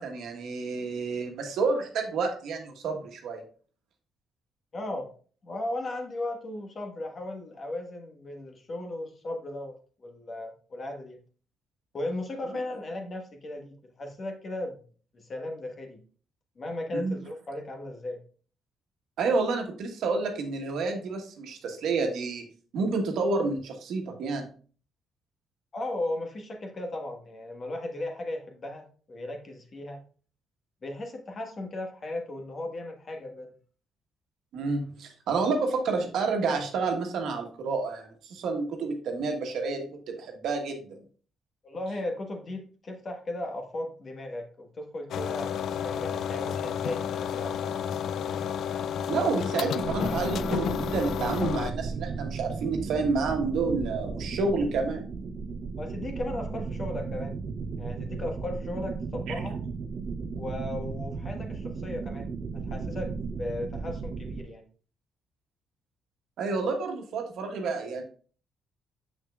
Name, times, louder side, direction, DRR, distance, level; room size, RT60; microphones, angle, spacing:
voice 1, 0.0-3.4 16.9-17.2 19.2-22.4 22.7-24.5 34.5-41.0 49.1-55.0 66.4-68.0, right 4 dB, 75° right, 3 dB, 1.3 m, -29 dB
voice 2, 4.7-5.1 5.4-11.2 11.9-14.8 15.1-16.0 16.6-18.2 25.7-30.0 30.8-33.5 41.6-47.7 55.8-57.3 57.8-59.6 60.4-64.6, left 1 dB, 40° left, 2 dB, 1.4 m, -36 dB
sound 1, 45.1-51.7, left 8 dB, 70° left, 0.3 m, -31 dB
sound 2, 49.8-64.4, right 4 dB, 55° right, 0.8 m, -35 dB
6.5 x 6.1 x 2.4 m, 0.41 s
cardioid pair, 90°, 0 cm